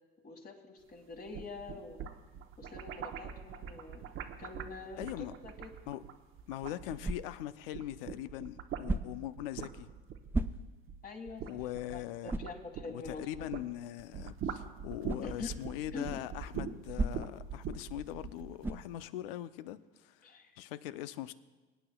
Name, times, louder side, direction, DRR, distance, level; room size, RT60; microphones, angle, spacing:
voice 1, 0.2-2.0 2.6-4.0 4.4-5.7 11.0-11.6 11.9-13.5 15.2-15.5 15.9-16.2 20.2-20.6, left 4 dB, 30° left, 1.9 m, -45 dB
sound 1, 1.1-7.3 7.6-13.7 14.0-18.8, right 7 dB, 45° right, 0.9 m, -43 dB
voice 2, 5.0-5.3 5.9-6.0 6.5-9.9 11.5-12.4 12.9-20.2 20.6-21.3, left 14 dB, 75° left, 0.6 m, -41 dB
sound 2, 7.0-7.6 8.8-9.3 10.3-10.9 11.4-11.5 12.3-12.6 15.0-15.3 16.9-17.5 18.6-19.0, right 2 dB, 10° right, 0.4 m, -35 dB
24.5 x 9.0 x 2.3 m
hypercardioid pair, 85°, 29 cm